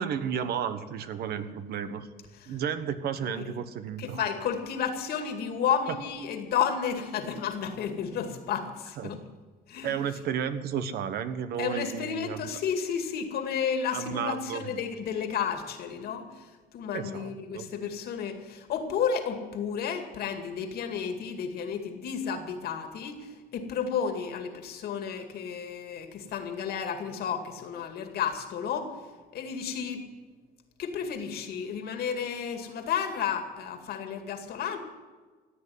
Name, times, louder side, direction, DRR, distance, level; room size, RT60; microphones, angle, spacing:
voice 1, 0.0-2.1 2.5-4.2 9.0-9.1 9.8-12.4 13.9-14.6 16.9-17.6, right 8 dB, 70° right, 11 dB, 1.3 m, -32 dB
voice 2, 4.0-9.2 9.7-10.0 11.6-28.9 29.3-30.1 30.8-34.8, left 7 dB, 70° left, 7 dB, 2.2 m, -32 dB
16.0 x 8.6 x 9.5 m, 1.4 s
cardioid pair, 110°, 17 cm